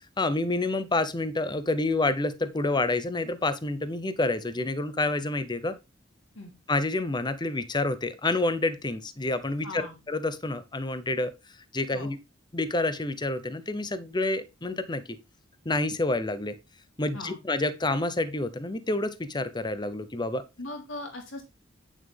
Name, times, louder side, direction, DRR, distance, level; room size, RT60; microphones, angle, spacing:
voice 1, 0.2-5.8 6.7-11.3 11.7-12.2 12.5-15.2 15.6-16.5 17.0-20.4, left 2 dB, 20° left, 0.8 m, -28 dB
voice 2, 9.6-10.0 11.9-12.1 17.1-17.4 20.6-21.4, left 2 dB, 70° left, 3.4 m, -39 dB
8.8 x 7.3 x 3.5 m
head